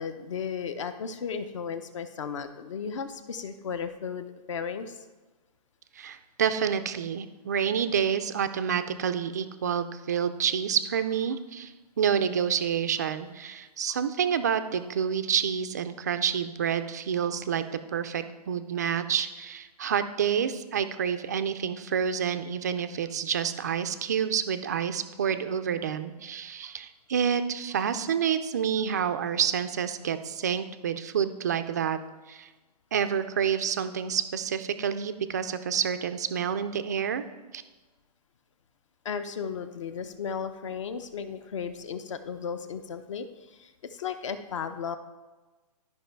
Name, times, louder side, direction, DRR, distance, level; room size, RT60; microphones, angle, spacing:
voice 1, 0.0-5.0 39.0-45.0, left 6 dB, 50° left, 10 dB, 0.7 m, -35 dB
voice 2, 6.0-17.6 17.9-32.0 32.3-32.5 32.9-37.2 37.5-37.6, right 8 dB, 25° right, 10 dB, 0.3 m, -28 dB
12.5 x 5.3 x 4.5 m, 1.2 s
hypercardioid pair, 170°, 20 cm